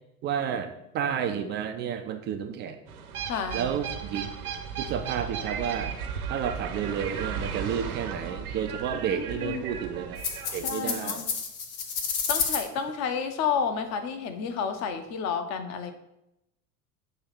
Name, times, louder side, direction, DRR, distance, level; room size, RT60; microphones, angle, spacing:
voice 1, 0.2-2.8 3.5-4.3 4.8-5.9 6.3-10.2 10.5-11.2, right 8 dB, 25° right, 7 dB, 0.4 m, -31 dB
sound 1, 2.9-10.7, right 7 dB, 70° right, 1.0 m, -35 dB
voice 2, 3.3-3.7 9.1-9.6 10.6-11.3 12.3-15.9, left 6 dB, 35° left, 8 dB, 0.9 m, -30 dB
sound 2, 10.2-12.6, left 5 dB, 65° left, 1.2 m, -30 dB
7.9 x 3.1 x 5.7 m, 0.85 s
figure-of-eight pair, 80°, 45 cm